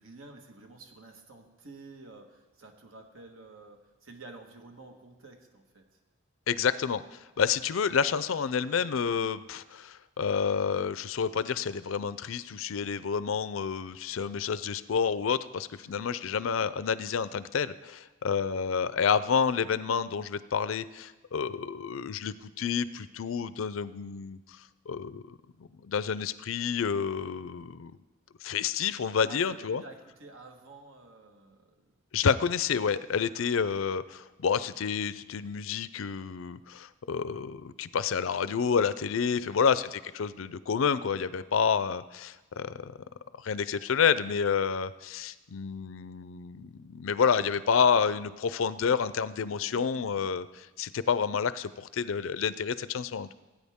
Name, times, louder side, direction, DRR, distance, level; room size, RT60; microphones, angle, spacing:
voice 1, 0.0-5.9 15.7-16.1 29.2-31.9 33.1-33.5 49.4-49.9, right 2 dB, 90° right, 3 dB, 1.5 m, -50 dB
voice 2, 6.5-7.0 7.4-24.4 24.9-27.9 28.4-29.8 32.1-42.9 43.4-53.3, left 6 dB, 80° left, 15 dB, 0.5 m, -29 dB
17.5 x 9.0 x 3.6 m, 1.2 s
head